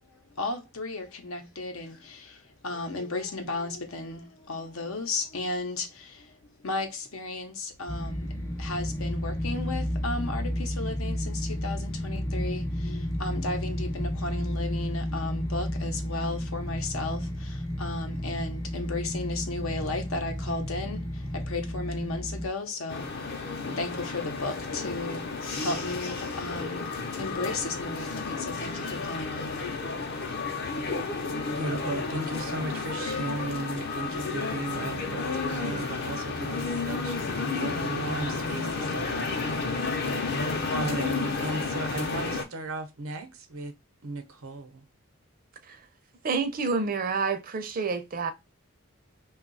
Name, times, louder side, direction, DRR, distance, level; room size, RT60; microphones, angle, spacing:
voice 1, 0.0-30.2, left 2 dB, 85° left, 0.8 m, -35 dB
sound 1, 7.9-22.5, equal, 15° left, 0.4 m, -32 dB
sound 2, 22.9-42.4, left 4 dB, 50° left, 0.7 m, -32 dB
voice 2, 31.5-39.9 40.7-43.7 44.0-44.8, right 2 dB, 85° right, 0.7 m, -36 dB
voice 3, 46.2-48.3, right 4 dB, 45° right, 0.5 m, -28 dB
2.7 x 2.3 x 3.9 m
head